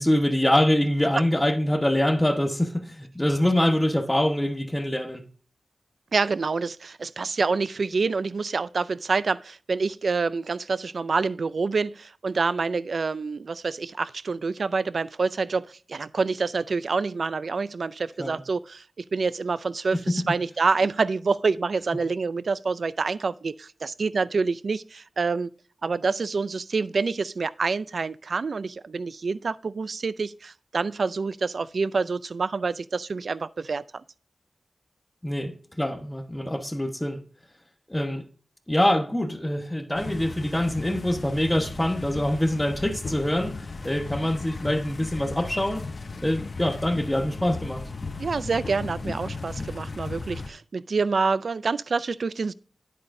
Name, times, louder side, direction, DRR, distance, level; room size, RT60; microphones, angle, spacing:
voice 1, 0.0-5.2 18.2-18.4 20.1-20.2 35.2-37.2 37.9-38.2 38.7-45.9 46.2-47.9, left 1 dB, 10° left, 1.2 m, -24 dB
voice 2, 6.1-25.5 25.8-33.8 48.2-52.5, right 4 dB, 65° right, 0.4 m, -27 dB
sound 1, 39.9-50.5, left 3 dB, 50° left, 0.7 m, -36 dB
9.8 x 8.3 x 2.7 m
wide cardioid pair, 95°, 0 cm